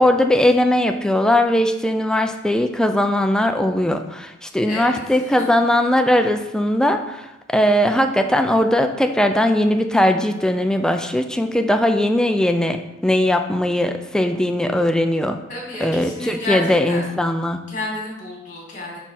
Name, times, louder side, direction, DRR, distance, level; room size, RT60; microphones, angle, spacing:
voice 1, 0.0-15.4 15.8-17.6, left 1 dB, 5° left, 6 dB, 0.4 m, -19 dB
voice 2, 4.7-5.0 5.3-5.5 15.5-17.0 17.7-19.0, left 2 dB, 40° left, -3 dB, 2.3 m, -30 dB
4.7 x 4.5 x 5.7 m, 0.95 s
head